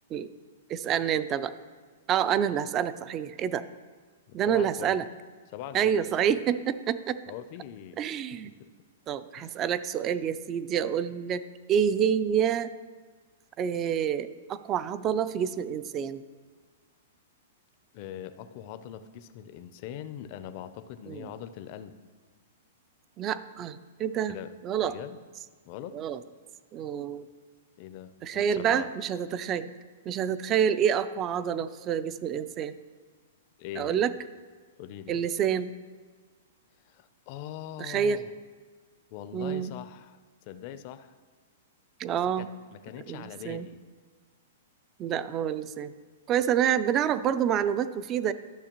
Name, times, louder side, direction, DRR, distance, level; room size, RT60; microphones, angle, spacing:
voice 1, 0.7-1.5 2.1-3.6 4.3-5.0 5.7-7.2 8.0-8.5 9.1-11.4 11.7-12.7 13.6-16.2 21.1-21.3 23.2-24.4 24.6-24.9 25.9-26.2 26.7-27.3 28.2-29.7 30.1-32.8 33.8-34.1 35.1-35.7 37.8-38.2 39.3-39.7 42.0-42.5 43.1-43.7 45.0-45.9 46.3-48.3, right 8 dB, 25° right, 14 dB, 0.3 m, -28 dB
voice 2, 4.3-5.0 5.5-6.1 7.3-8.0 8.4-8.7 9.4-9.6 17.9-22.0 24.3-24.5 24.8-25.2 25.7-26.0 27.8-28.9 33.6-34.1 34.8-35.3 36.8-38.3 39.1-40.2 40.5-41.2 42.1-43.8, left 10 dB, 45° left, 11 dB, 0.4 m, -42 dB
12.5 x 6.5 x 3.0 m, 1.5 s
hypercardioid pair, 140°, 0 cm